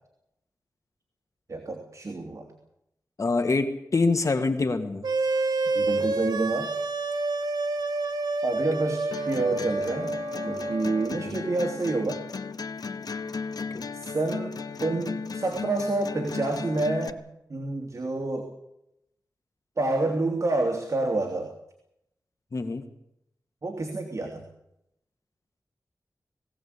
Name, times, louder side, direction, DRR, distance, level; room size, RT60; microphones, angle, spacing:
voice 1, 1.5-2.5 5.7-6.7 8.4-10.2 10.4-12.2 13.9-17.2 17.5-18.5 19.8-21.5 23.6-24.4, right 2 dB, 45° right, 3 dB, 3.0 m, -28 dB
voice 2, 3.2-5.1 9.5-9.6 11.1-11.4 13.6-13.8 22.5-22.8, left 3 dB, 50° left, 7 dB, 1.7 m, -26 dB
sound 1, 5.0-11.2, right 3 dB, 75° right, 2.1 m, -28 dB
sound 2, 9.1-17.1, left 5 dB, 65° left, 1.0 m, -36 dB
21.5 x 16.5 x 8.4 m, 0.81 s
wide cardioid pair, 110°, 7 cm